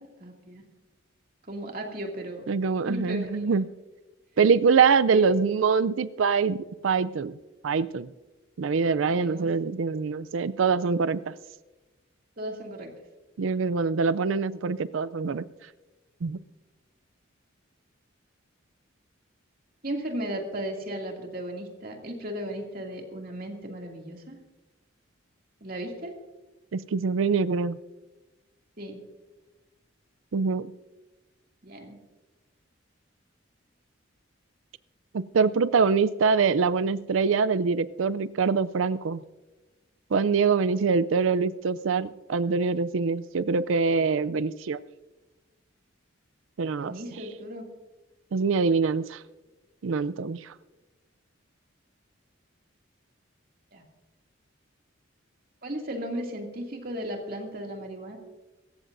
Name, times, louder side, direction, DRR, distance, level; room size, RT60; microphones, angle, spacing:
voice 1, 0.2-0.6 1.5-2.4 2.8-3.6 5.1-5.3 9.1-9.7 12.4-13.0 19.8-24.4 25.6-26.2 28.8-29.0 31.6-32.0 46.8-47.7 53.7-53.8 55.6-58.2, equal, 45° right, 1 dB, 2.5 m, -35 dB
voice 2, 2.5-3.7 4.4-6.6 6.8-7.4 7.6-8.1 8.6-11.3 13.4-15.4 16.2-16.4 26.7-27.8 30.3-30.7 35.1-39.2 40.1-44.8 46.6-46.9 48.3-49.2 49.8-50.5, right 5 dB, 75° right, 16 dB, 0.4 m, -24 dB
24.0 x 14.5 x 2.6 m, 1.1 s
head